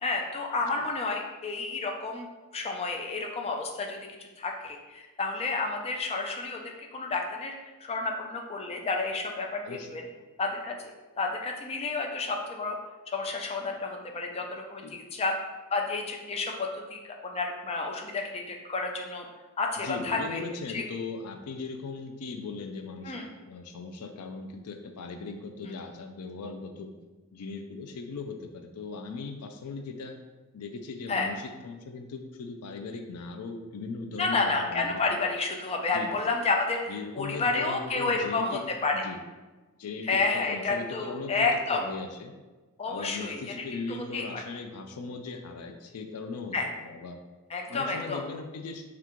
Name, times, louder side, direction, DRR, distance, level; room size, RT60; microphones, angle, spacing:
voice 1, 0.0-2.3 2.5-7.5 7.8-10.0 10.4-10.8 11.2-12.8 13.1-15.3 15.7-19.2 19.6-20.4 20.7-20.8 23.0-23.3 31.1-31.3 34.2-39.0 40.1-41.9 42.8-44.4 46.5-46.7 47.5-48.3, left 3 dB, 25° left, 2 dB, 0.4 m, -30 dB
voice 2, 19.8-26.9 27.3-30.2 30.5-35.0 35.9-36.1 36.9-38.6 38.9-39.2 39.8-42.3 42.9-47.2 47.7-48.9, left 4 dB, 85° left, 5 dB, 0.4 m, -38 dB
4.4 x 2.4 x 3.6 m, 1.2 s
head